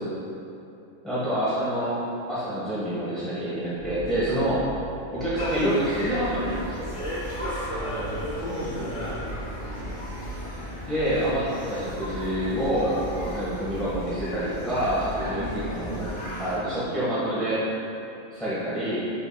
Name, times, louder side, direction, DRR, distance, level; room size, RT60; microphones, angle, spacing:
voice 1, 1.0-2.0 2.3-4.7 5.1-6.8 10.9-16.1 16.4-17.6 18.3-19.0, right 1 dB, ahead, -12 dB, 0.6 m, -27 dB
sound 1, 3.8-4.8 5.1-5.6 6.2-7.6 8.0-8.5 9.0-10.5 10.8-11.3 11.9-13.3 13.7-14.2 14.7-16.1, right 1 dB, 60° left, 0.5 m, -40 dB
sound 2, 5.3-16.6, equal, 35° left, 1.2 m, -35 dB
voice 2, 7.7-9.9 15.3-16.2, right 1 dB, 15° right, -11 dB, 1.2 m, -38 dB
5.1 x 3.4 x 2.2 m, 2.8 s
omnidirectional pair, 1.4 m